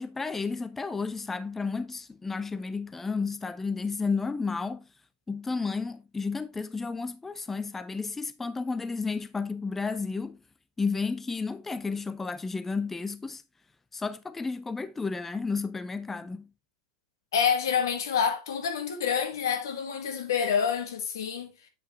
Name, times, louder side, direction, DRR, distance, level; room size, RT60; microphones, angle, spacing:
voice 1, 0.0-4.9 5.3-10.4 10.8-13.4 13.9-16.5, left 4 dB, 10° left, 0.4 m, -32 dB
voice 2, 17.3-21.5, left 7 dB, 80° left, 1.7 m, -27 dB
8.5 x 5.4 x 3.1 m
hypercardioid pair, 105°, 2 cm